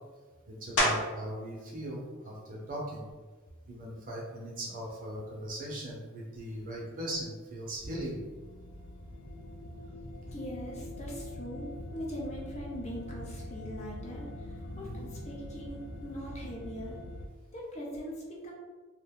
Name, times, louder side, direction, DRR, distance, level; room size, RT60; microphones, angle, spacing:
voice 1, 0.5-3.0 3.7-8.2 14.7-15.1, right 1 dB, 40° right, -3 dB, 0.7 m, -39 dB
sound 1, 0.8-1.4 1.9-6.3 6.9-12.0 12.3-18.0, left 1 dB, 65° left, 0.8 m, -39 dB
sound 2, 7.5-17.3, left 1 dB, 85° left, 0.4 m, -43 dB
voice 2, 10.3-17.0 17.5-18.5, equal, 30° left, -3 dB, 0.6 m, -41 dB
2.5 x 2.2 x 3.5 m, 1.3 s
head